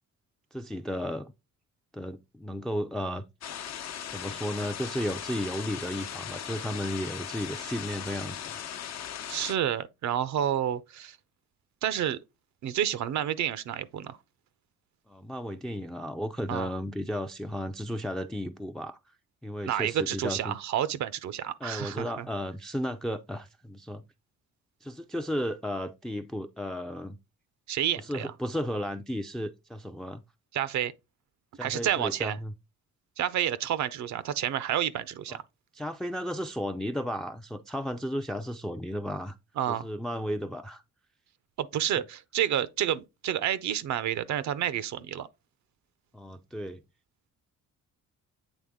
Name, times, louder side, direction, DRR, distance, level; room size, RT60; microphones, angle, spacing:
voice 1, 0.5-1.3 1.9-3.2 4.1-8.6 15.1-19.0 19.4-20.6 21.6-24.0 24.8-27.2 28.0-30.2 31.5-32.5 35.3-35.4 35.7-39.4 39.7-40.8 46.1-46.8, equal, ahead, 0.4 m, -34 dB
sound 1, 3.4-9.5, left 9 dB, 60° left, 0.8 m, -38 dB
voice 2, 9.3-11.2 11.8-12.2 12.6-14.2 16.5-16.7 19.6-22.3 27.7-28.3 30.5-30.9 31.6-32.4 33.2-35.4 39.6-39.9 41.6-45.3, right 10 dB, 65° right, 0.6 m, -29 dB
8.1 x 3.4 x 3.5 m
cardioid pair, 90°, 30 cm